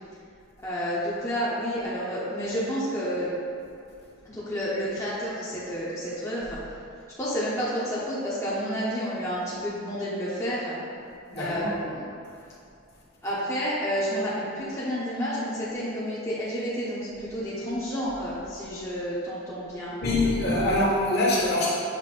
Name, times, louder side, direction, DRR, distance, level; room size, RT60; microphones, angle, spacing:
voice 1, 0.6-3.3 4.2-6.6 7.2-10.8 11.3-12.0 13.2-19.9, equal, 15° left, -9 dB, 0.9 m, -30 dB
voice 2, 11.3-11.7 20.0-21.7, left 1 dB, 50° left, -5 dB, 1.4 m, -24 dB
7.3 x 3.0 x 5.3 m, 2.5 s
head